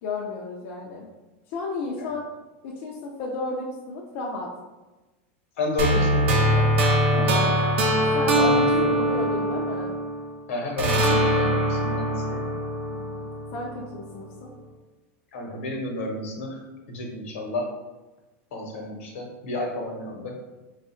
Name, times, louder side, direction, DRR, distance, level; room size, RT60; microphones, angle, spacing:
voice 1, 0.0-1.1 1.5-2.2 2.6-4.5 7.1-7.5 8.1-8.5 8.9-9.9 12.9-14.5, left 3 dB, 55° left, -3 dB, 0.5 m, -33 dB
voice 2, 5.6-6.9 7.1-7.6 8.3-9.2 10.5-12.5 15.3-17.7 18.5-20.4, left 2 dB, 80° left, 1 dB, 1.0 m, -31 dB
sound 1, 5.8-10.3 10.8-13.9, equal, 70° right, 0.7 m, -22 dB
3.3 x 2.4 x 4.3 m, 1.1 s
supercardioid pair, 145°, 7 cm